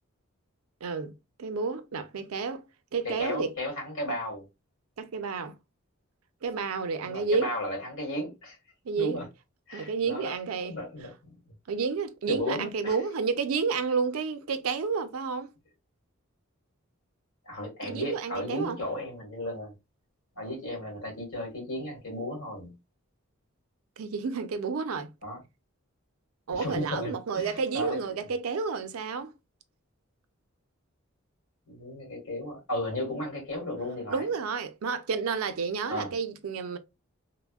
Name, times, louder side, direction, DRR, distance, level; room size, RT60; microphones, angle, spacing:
voice 1, 0.8-1.1 1.4-2.6 2.9-3.5 5.0-5.5 6.4-7.5 8.9-9.2 9.7-10.8 11.7-15.5 17.8-18.8 24.0-25.1 26.5-29.3 34.1-36.8, right 5 dB, 85° right, 0.4 m, -30 dB
voice 2, 3.0-4.4 7.0-8.6 9.0-9.3 9.7-10.3 10.6-11.1 12.3-13.0 17.4-19.7 20.4-22.7 25.2-25.4 26.5-28.0 31.7-34.3 35.9-36.1, left 1 dB, 65° left, 1.6 m, -34 dB
3.3 x 2.0 x 2.3 m
head